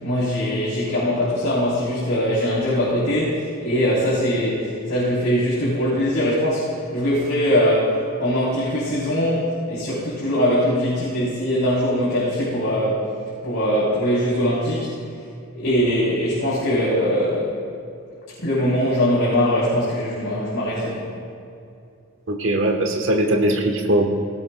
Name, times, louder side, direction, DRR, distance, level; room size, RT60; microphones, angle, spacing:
voice 1, 0.0-13.1 13.4-14.9 15.5-17.6 18.4-21.1, equal, 85° left, -9 dB, 3.5 m, -21 dB
voice 2, 22.3-24.1, right 1 dB, 60° right, 2 dB, 1.1 m, -20 dB
17.5 x 17.5 x 2.2 m, 2.5 s
head